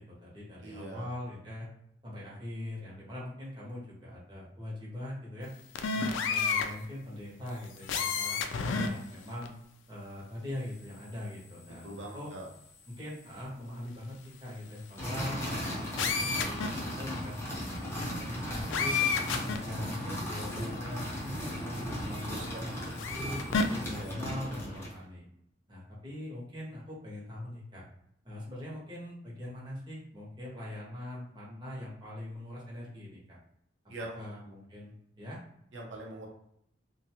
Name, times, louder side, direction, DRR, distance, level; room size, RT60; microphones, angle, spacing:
voice 1, 0.0-1.7 2.0-5.5 5.9-9.5 9.9-12.3 12.9-14.1 14.4-19.0 19.4-23.4 23.8-25.2 25.7-27.8 28.2-33.4 34.1-35.4, left 1 dB, 25° right, -6 dB, 0.9 m, -42 dB
voice 2, 0.6-1.1 11.8-12.5 22.3-22.7 23.9-24.2 33.9-34.3 35.7-36.3, right 1 dB, 85° right, -1 dB, 0.7 m, -43 dB
sound 1, 5.8-6.7 7.8-8.9 9.4-9.5 16.0-16.7 18.7-19.6 20.5-20.6 23.0-23.6, left 5 dB, 85° left, 0.3 m, -29 dB
sound 2, 15.0-25.0, equal, 15° left, 0.7 m, -37 dB
2.4 x 2.3 x 2.8 m, 0.73 s
head